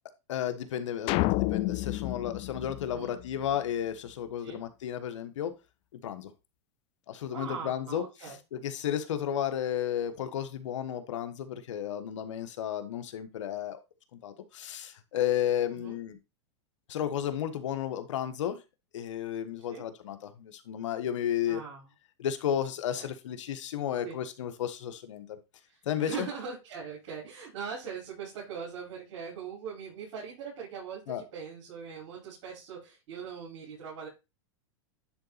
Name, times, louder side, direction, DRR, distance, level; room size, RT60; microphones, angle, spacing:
voice 1, 0.3-5.5 5.9-6.3 7.1-8.0 8.5-13.8 14.2-16.2 16.9-18.6 18.9-21.6 22.2-25.4 25.8-26.3 31.1-31.2, left 10 dB, 80° left, 10 dB, 1.4 m, -33 dB
sound 1, 1.1-3.5, left 20 dB, 35° left, 0.3 m, -30 dB
voice 2, 7.3-8.4 15.7-16.0 19.7-19.8 21.5-21.9 23.0-23.1 24.0-24.2 25.7-34.1, right 6 dB, 65° right, -6 dB, 5.0 m, -41 dB
10.5 x 4.0 x 4.1 m, 0.26 s
supercardioid pair, 135°, 15 cm